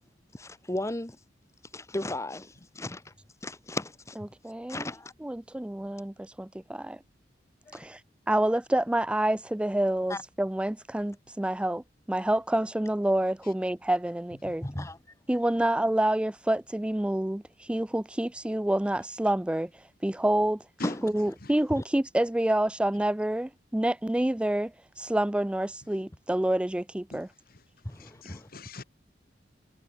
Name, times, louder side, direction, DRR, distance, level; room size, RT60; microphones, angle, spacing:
voice 1, 0.3-1.2 1.7-3.1 3.4-4.2 4.7-5.1 7.7-7.8 10.1-10.2 14.6-15.0 20.8-21.1 21.8-21.9 27.8-28.5, left 1 dB, 15° left, 1.2 m, -35 dB
voice 2, 4.2-4.9 5.2-7.0 7.7-8.0 8.3-14.6 15.3-20.6 21.0-27.3, right 1 dB, 5° right, 0.3 m, -28 dB
voice 3, 27.1-28.8, left 3 dB, 55° left, 2.1 m, -45 dB
head